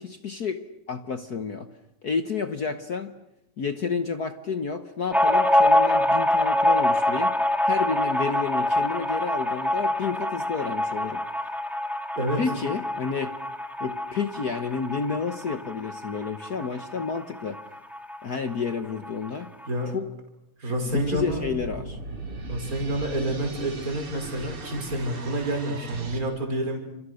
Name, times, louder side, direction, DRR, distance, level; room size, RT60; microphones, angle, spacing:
voice 1, 0.0-1.7 2.0-3.1 3.6-7.3 7.6-11.2 12.3-13.3 13.8-17.6 18.2-19.5 19.9-20.1 20.8-22.0, left 5 dB, 65° left, 9 dB, 0.9 m, -30 dB
sound 1, 5.1-18.2 18.5-18.6 18.9-19.7, left 1 dB, ahead, 1.7 m, -25 dB
voice 2, 20.6-21.4 22.5-26.8, right 1 dB, 30° right, 3 dB, 6.0 m, -28 dB
sound 2, 20.9-26.2, right 3 dB, 50° right, 3.8 m, -38 dB
30.0 x 28.0 x 6.6 m, 0.85 s
omnidirectional pair, 3.3 m